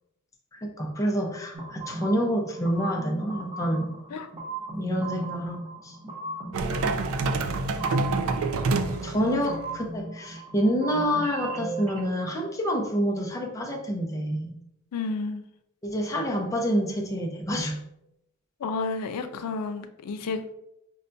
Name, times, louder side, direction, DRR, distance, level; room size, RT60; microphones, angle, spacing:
voice 1, 0.5-3.9 4.7-6.0 9.0-14.6 15.8-17.8, equal, 15° left, 0 dB, 0.5 m, -27 dB
sound 1, 1.5-12.0, right 2 dB, 25° right, 0.6 m, -37 dB
sound 2, 6.5-9.9, right 3 dB, 65° right, 0.3 m, -27 dB
voice 2, 14.9-15.4 18.6-20.4, left 4 dB, 90° left, 9 dB, 0.4 m, -31 dB
5.4 x 2.2 x 2.5 m, 0.83 s
head